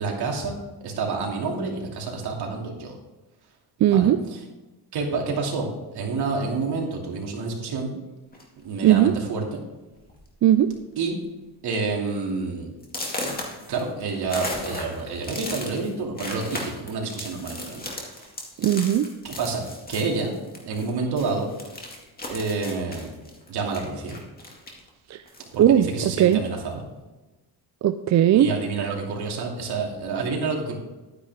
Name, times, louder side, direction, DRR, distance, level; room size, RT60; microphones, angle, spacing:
voice 1, 0.0-3.0 3.9-4.1 4.9-7.9 8.6-9.6 11.0-11.2 11.6-12.7 13.7-18.3 19.2-19.6 19.9-21.5 22.3-23.1 23.5-24.2 25.5-26.8 28.3-30.8, right 4 dB, 60° right, -1 dB, 2.8 m, -28 dB
voice 2, 3.8-4.2 8.8-9.1 10.4-10.7 18.6-19.1 25.1-25.2 25.6-26.4 27.8-28.5, right 11 dB, 40° right, 10 dB, 0.4 m, -18 dB
sound 1, 8.3-8.6 9.5-9.6 9.9-10.2 10.5-11.0 11.4-11.5 12.0-12.1 12.8-20.9 21.2-24.9 25.3-26.3, left 2 dB, 20° left, 2.2 m, -36 dB
11.5 x 9.7 x 3.6 m, 1.1 s
cardioid pair, 135°, 43 cm